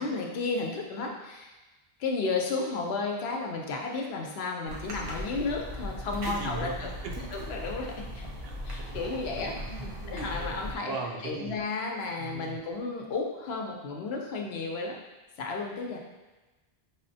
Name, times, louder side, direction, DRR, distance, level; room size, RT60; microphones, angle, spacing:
voice 1, 0.0-1.5 2.0-6.9 7.3-8.3 8.6-9.5 10.1-11.0 11.2-15.0 15.4-16.0, left 3 dB, 80° left, 1 dB, 0.9 m, -33 dB
sound 1, 4.6-10.8, equal, 45° right, 0.5 m, -38 dB
voice 2, 6.2-7.3 8.4-8.5 9.3-10.5 10.9-11.6 12.2-12.6, right 4 dB, 75° right, 1 dB, 0.8 m, -39 dB
5.5 x 2.1 x 2.6 m, 1.1 s
omnidirectional pair, 1.0 m